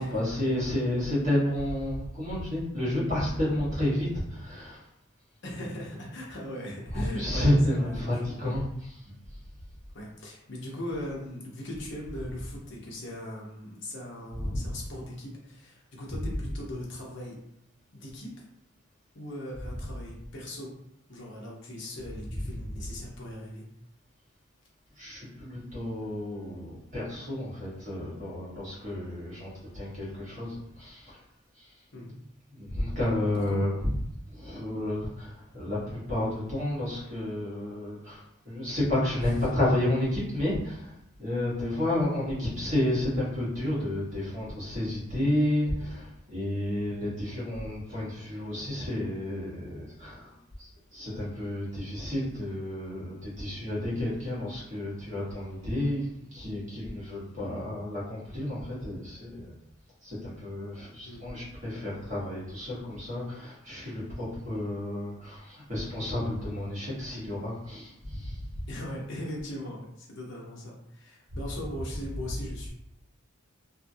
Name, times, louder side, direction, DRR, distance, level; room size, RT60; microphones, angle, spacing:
voice 1, 0.0-4.8 6.9-9.1 14.3-14.7 16.1-16.4 19.7-19.8 22.3-22.8 25.0-31.2 31.6-31.7 32.5-34.0 34.3-40.9 41.2-50.3 50.6-59.5 60.0-68.4 71.3-71.5 72.0-72.3, left 1 dB, 35° right, -7 dB, 1.2 m, -31 dB
voice 2, 5.4-8.6 9.9-17.4 17.9-18.4 19.1-20.7 21.1-23.7 31.9-32.2 33.3-33.6 57.4-57.7 61.0-61.4 68.7-72.7, left 1 dB, 55° left, -3 dB, 0.8 m, -39 dB
2.7 x 2.6 x 2.6 m, 0.79 s
head